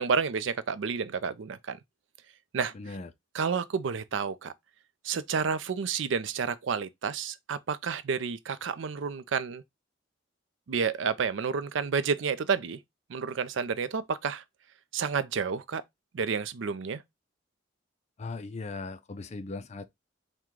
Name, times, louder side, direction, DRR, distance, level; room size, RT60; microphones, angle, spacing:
voice 1, 0.0-1.8 2.5-2.7 3.3-4.5 5.0-9.6 10.7-12.8 13.1-14.4 14.9-15.8 16.1-17.0, right 6 dB, 75° right, 0.4 m, -30 dB
voice 2, 2.7-3.1 18.2-19.9, left 3 dB, 35° left, 0.4 m, -38 dB
4.6 x 2.2 x 3.6 m
head